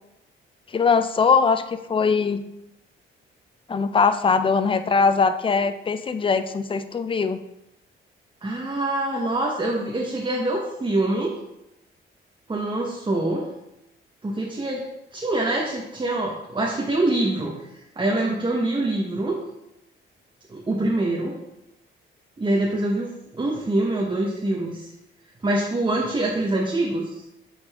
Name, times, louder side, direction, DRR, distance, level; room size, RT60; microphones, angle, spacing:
voice 1, 0.7-1.6 1.9-2.4 3.7-7.4, left 5 dB, 25° left, 10 dB, 0.5 m, -21 dB
voice 2, 8.4-11.3 12.5-13.5 14.2-14.8 15.1-17.5 18.0-19.4 20.5-21.4 22.4-24.9 25.4-27.3, right 2 dB, 25° right, -2 dB, 1.1 m, -25 dB
8.2 x 4.0 x 3.5 m, 0.86 s
cardioid pair, 100°, 21 cm